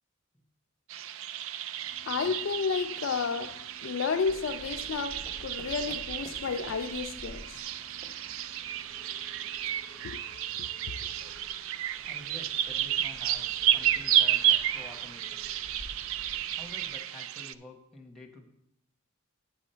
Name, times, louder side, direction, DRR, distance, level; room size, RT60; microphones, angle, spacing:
sound 1, 0.9-17.5, right 11 dB, 70° right, 0.3 m, -32 dB
voice 1, 1.9-8.5 9.0-9.7 10.0-10.2 10.6-10.9, left 5 dB, 65° left, 0.4 m, -33 dB
sound 2, 3.9-9.1, right 1 dB, 30° right, 1.1 m, -53 dB
sound 3, 4.2-17.0, left 1 dB, 55° right, 2.6 m, -52 dB
voice 2, 12.0-15.4 16.5-18.4, left 1 dB, ahead, 1.1 m, -49 dB
8.3 x 7.1 x 4.4 m
head